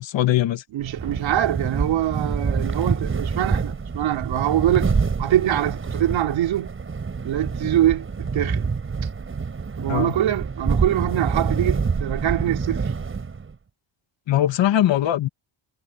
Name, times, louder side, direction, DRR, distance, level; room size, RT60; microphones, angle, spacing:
voice 1, 0.0-0.6 9.9-10.1 14.3-15.3, left 12 dB, 65° left, 2.2 m, -20 dB
voice 2, 0.7-4.9 5.2-6.7 7.2-8.7 9.8-12.8, right 12 dB, 70° right, 3.8 m, -24 dB
sound 1, 0.8-13.5, right 5 dB, 25° right, 6.1 m, -26 dB
cardioid pair, 155°, 48 cm